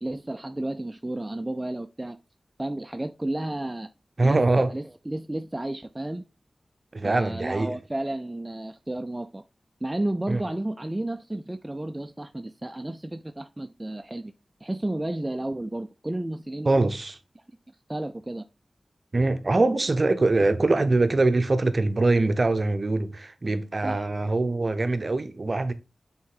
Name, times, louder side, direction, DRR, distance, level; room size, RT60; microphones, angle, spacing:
voice 1, 0.0-2.2 2.6-3.9 4.2-6.2 7.0-9.4 9.8-14.3 14.6-16.7 17.9-18.4 23.8-24.1, right 1 dB, 20° right, 0.4 m, -32 dB
voice 2, 4.2-4.7 6.9-7.8 10.3-10.4 16.6-17.2 19.1-25.7, right 2 dB, 45° right, 0.8 m, -23 dB
7.1 x 3.7 x 3.9 m
wide cardioid pair, 70°, 0 cm